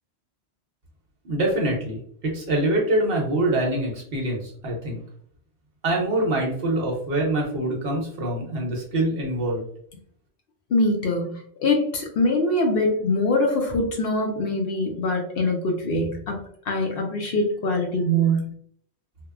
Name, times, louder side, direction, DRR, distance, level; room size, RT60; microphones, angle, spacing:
voice 1, 1.2-5.0 5.8-9.6, right 1 dB, 60° right, -1 dB, 1.0 m, -25 dB
voice 2, 10.7-16.4 16.7-18.5, left 1 dB, 65° left, 1 dB, 0.8 m, -23 dB
2.9 x 2.1 x 2.3 m, 0.62 s
omnidirectional pair, 1.1 m